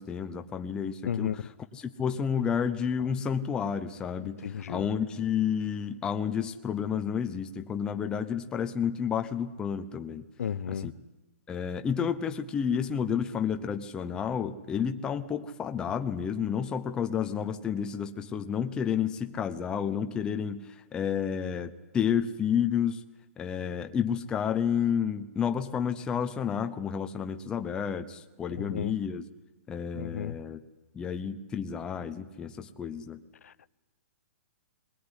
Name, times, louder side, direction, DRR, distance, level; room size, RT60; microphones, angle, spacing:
voice 1, 0.0-1.3 1.7-10.2 10.7-10.9 11.5-23.0 23.4-29.2 29.7-30.6 30.9-33.2, left 7 dB, 10° left, 0.7 m, -30 dB
voice 2, 1.0-1.5 4.4-4.9 10.4-10.9 28.5-28.9 29.9-30.4 33.4-33.7, left 8 dB, 80° left, 0.7 m, -34 dB
20.0 x 20.0 x 9.9 m
hypercardioid pair, 165°, 8 cm